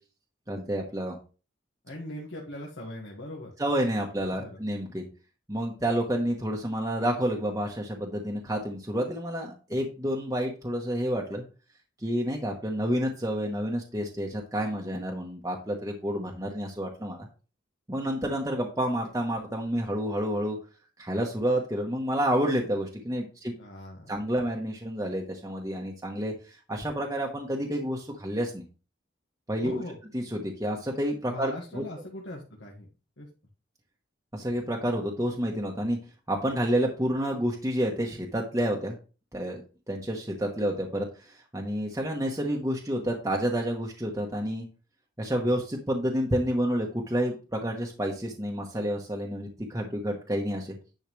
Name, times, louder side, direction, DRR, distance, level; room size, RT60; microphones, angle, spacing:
voice 1, 0.5-1.2 3.6-5.0 5.5-11.4 12.0-17.3 17.9-20.6 21.0-23.5 24.1-28.6 29.5-29.8 30.1-31.8 34.3-36.0 36.3-38.9 39.3-44.6 45.2-50.8, equal, 15° right, 0 dB, 1.1 m, -29 dB
voice 2, 1.8-3.5 4.4-4.6 23.6-24.2 29.6-30.0 31.3-32.9 33.2-33.3, left 1 dB, 70° left, -2 dB, 1.7 m, -40 dB
10.5 x 5.6 x 3.2 m, 0.34 s
head